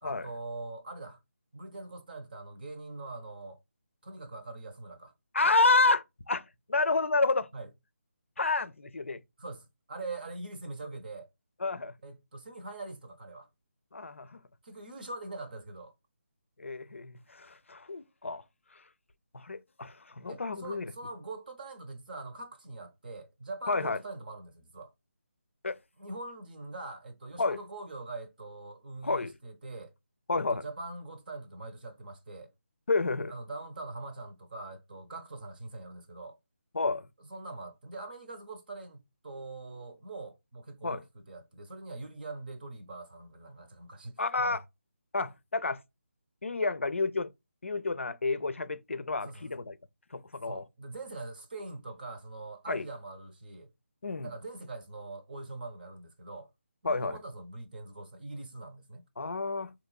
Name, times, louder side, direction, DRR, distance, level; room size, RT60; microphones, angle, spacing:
voice 1, 0.0-1.2 1.5-3.6 4.0-5.1 7.5-7.7 9.4-11.3 12.0-13.5 14.6-15.9 20.2-24.9 26.0-29.9 30.3-32.5 33.3-36.4 37.2-44.6 49.2-49.5 50.4-53.7 54.2-56.5 56.8-59.1, right 2 dB, 40° right, 0.8 m, -43 dB
voice 2, 5.3-7.5 8.4-9.2 11.6-11.9 13.9-14.4 16.6-18.4 18.7-18.8 19.3-20.9 23.7-24.0 25.6-25.8 27.4-27.6 29.0-29.3 30.3-30.6 32.9-33.3 36.7-37.1 40.8-41.0 44.2-44.6 45.1-45.8 46.4-47.3 47.6-49.8 50.1-50.6 52.7-52.9 54.0-54.3 56.8-57.2 59.2-59.7, left 3 dB, 65° left, 0.5 m, -29 dB
4.3 x 3.0 x 2.2 m
figure-of-eight pair, 150°, 7 cm